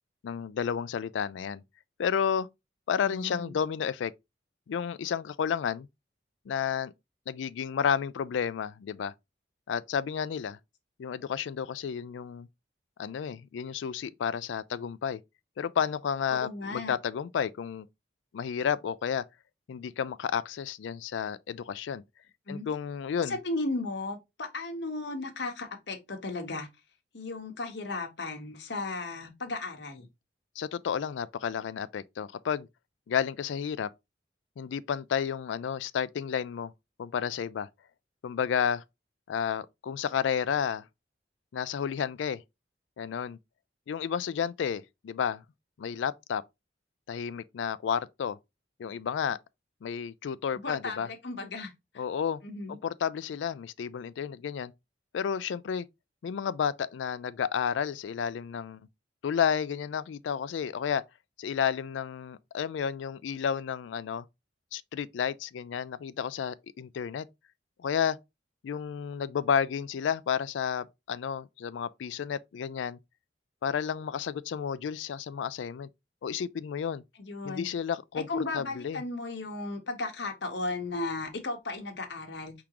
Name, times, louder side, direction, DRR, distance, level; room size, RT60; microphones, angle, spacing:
voice 1, 0.2-1.6 2.0-2.5 2.9-4.1 4.7-5.9 6.5-6.9 7.3-9.1 9.7-10.6 11.0-12.5 13.0-15.2 15.6-17.9 18.3-19.2 19.7-22.0 22.5-23.4 30.6-32.7 33.1-33.9 34.6-36.7 37.0-37.7 38.2-38.8 39.3-40.8 41.5-42.4 43.0-43.4 43.9-45.4 45.8-46.4 47.1-48.4 48.8-49.4 49.8-51.1 52.0-52.4 52.7-54.7 55.1-55.9 56.2-58.8 59.2-61.0 61.4-64.2 64.7-67.3 67.8-68.2 68.6-73.0 73.6-75.9 76.2-77.0 77.4-79.0, left 7 dB, 90° left, 0.3 m, -31 dB
voice 2, 3.0-3.5 16.3-16.9 22.5-22.7 23.2-26.7 27.1-30.1 50.5-52.0 52.4-52.8 77.2-77.7 78.1-82.5, left 3 dB, 70° left, 1.1 m, -35 dB
4.9 x 3.6 x 2.9 m
head